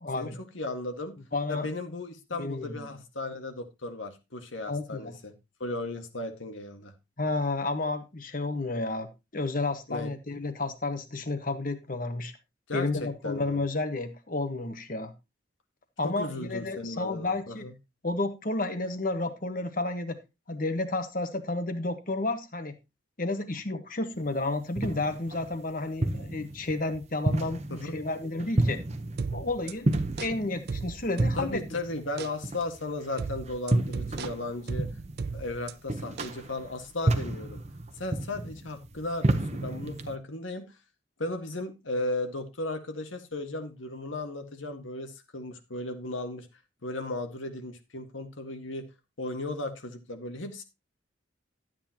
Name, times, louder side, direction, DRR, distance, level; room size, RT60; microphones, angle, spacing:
voice 1, 0.0-0.4 1.3-1.7 2.4-2.9 4.7-5.1 7.2-12.3 12.7-15.1 16.0-17.7 18.0-20.2 20.5-22.8 23.2-28.8 29.3-29.9 30.2-31.8, left 2 dB, 45° left, 9 dB, 1.3 m, -31 dB
voice 2, 0.5-1.2 1.5-5.3 5.6-6.9 9.9-10.1 12.7-13.6 16.0-17.7 27.7-27.9 31.4-34.9 35.3-37.6 38.0-40.7 41.2-46.5 46.8-48.8 49.2-50.6, left 2 dB, 80° left, 6 dB, 1.8 m, -35 dB
sound 1, 24.3-40.2, right 1 dB, 35° right, 0.9 m, -32 dB
sound 2, 29.2-31.7 32.2-32.4 33.2-35.7 36.2-36.4, right 4 dB, 55° right, 0.4 m, -36 dB
12.5 x 8.8 x 2.9 m, 0.25 s
head